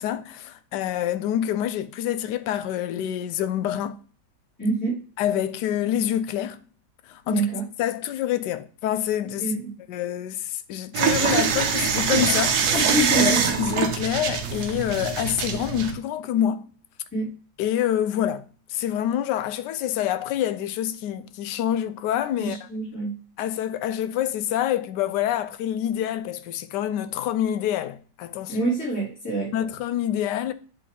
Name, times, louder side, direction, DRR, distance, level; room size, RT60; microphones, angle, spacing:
voice 1, 0.0-4.0 5.2-6.6 7.1-7.4 7.8-9.5 9.9-12.8 13.2-16.7 17.6-18.4 18.7-22.6 23.4-28.5 29.5-30.5, left 11 dB, 75° left, 1.0 m, -26 dB
voice 2, 4.6-5.0 7.3-7.6 9.4-9.7 12.7-13.4 17.1-17.3 22.4-23.1 28.5-29.5, right 2 dB, 10° left, 3.2 m, -26 dB
sound 1, 10.9-15.9, right 6 dB, 60° right, 1.2 m, -24 dB
7.7 x 4.2 x 3.3 m
omnidirectional pair, 2.2 m